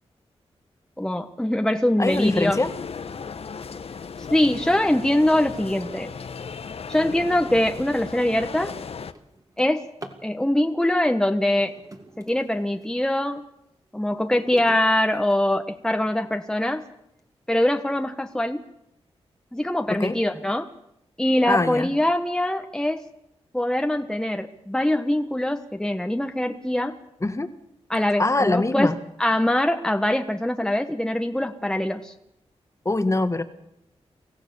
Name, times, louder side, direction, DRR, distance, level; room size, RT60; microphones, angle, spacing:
voice 1, 1.0-2.6 4.3-6.1 6.9-8.7 9.6-9.8 10.2-11.8 12.2-13.4 13.9-16.8 17.5-18.6 19.5-20.7 21.2-23.0 23.5-27.0 27.9-28.9 29.2-32.1, left 1 dB, 5° left, 6 dB, 1.2 m, -23 dB
voice 2, 2.0-2.7 19.9-20.2 21.5-21.9 27.2-27.5 28.2-29.0 32.8-33.4, left 2 dB, 25° left, 10 dB, 1.5 m, -23 dB
sound 1, 2.1-9.1, left 5 dB, 65° left, 1.0 m, -36 dB
Drawer open or close, 8.5-10.3 11.4-13.0 13.5-15.9 16.6-16.7 17.2-17.3 17.6-18.0, right 2 dB, 30° right, 2.7 m, -46 dB
24.5 x 15.5 x 7.0 m, 0.81 s
cardioid pair, 70°, 11 cm